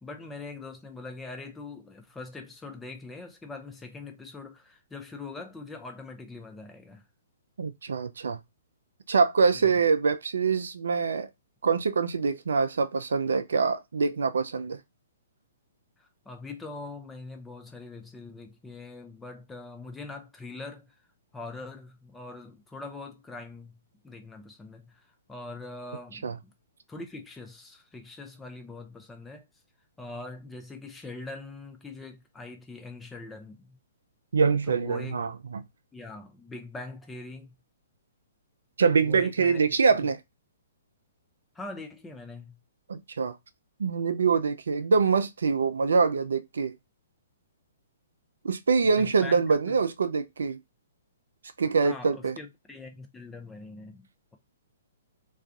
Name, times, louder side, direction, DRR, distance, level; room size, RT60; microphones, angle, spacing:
voice 1, 0.0-7.0 9.5-9.7 16.0-20.9 21.3-26.5 26.9-29.5 30.0-33.8 34.7-35.2 35.9-37.5 39.0-39.6 41.5-42.6 49.0-49.8 51.8-54.4, left 3 dB, 10° left, 0.5 m, -43 dB
voice 2, 7.6-8.4 9.1-11.3 11.6-14.8 26.2-26.4 34.3-35.6 38.8-40.2 42.9-43.4 43.8-46.7 48.4-50.6 51.6-52.3, right 5 dB, 70° right, 0.3 m, -24 dB
2.4 x 2.2 x 2.5 m
figure-of-eight pair, 120°, 0 cm